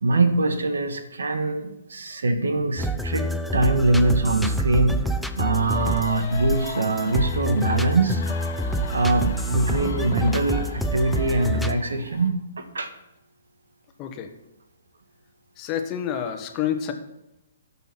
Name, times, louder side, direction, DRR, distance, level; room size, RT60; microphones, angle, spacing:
voice 1, 0.0-8.2 8.9-12.9, right 2 dB, 85° right, 8 dB, 1.4 m, -23 dB
sound 1, 2.8-11.8, equal, ahead, 0.6 m, -27 dB
sound 2, 5.6-12.3, left 3 dB, 70° left, 1.4 m, -36 dB
voice 2, 14.0-14.3 15.6-16.9, left 9 dB, 30° left, 6 dB, 1.3 m, -28 dB
12.0 x 5.8 x 5.9 m, 0.89 s
hypercardioid pair, 135°, 0 cm